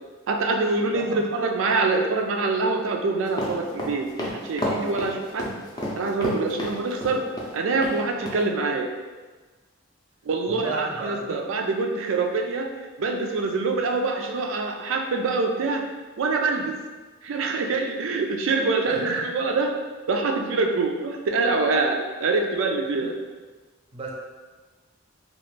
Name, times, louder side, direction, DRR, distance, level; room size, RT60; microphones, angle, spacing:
voice 1, 0.3-4.1 4.4-5.5 6.0-7.2 7.5-8.9 10.2-12.7 13.0-15.8 16.2-16.7 17.2-19.7 20.1-23.2, right 3 dB, 85° right, 3 dB, 0.4 m, -25 dB
sound 1, 3.3-7.5 7.8-7.9 8.3-8.4, equal, 20° left, 0.5 m, -29 dB
voice 2, 10.5-11.2 18.9-19.2 23.9-24.1, right 3 dB, 30° right, -2 dB, 0.5 m, -33 dB
2.9 x 2.4 x 3.2 m, 1.3 s
head